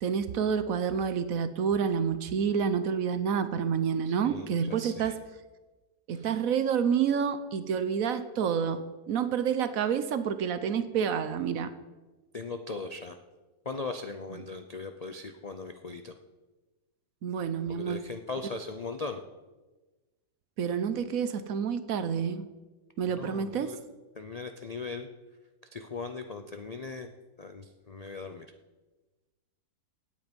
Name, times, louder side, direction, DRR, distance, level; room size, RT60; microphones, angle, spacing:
voice 1, 0.0-5.2 6.1-11.7 17.2-18.0 20.6-22.5 23.0-23.7, right 7 dB, 65° right, 12 dB, 1.1 m, -28 dB
voice 2, 4.1-5.1 6.1-6.3 12.3-13.2 13.6-16.1 17.7-19.2 23.1-23.8 24.2-25.1 25.7-27.1 27.4-28.5, left 3 dB, 60° left, 7 dB, 0.4 m, -39 dB
16.5 x 8.8 x 5.3 m, 1.2 s
omnidirectional pair, 1.7 m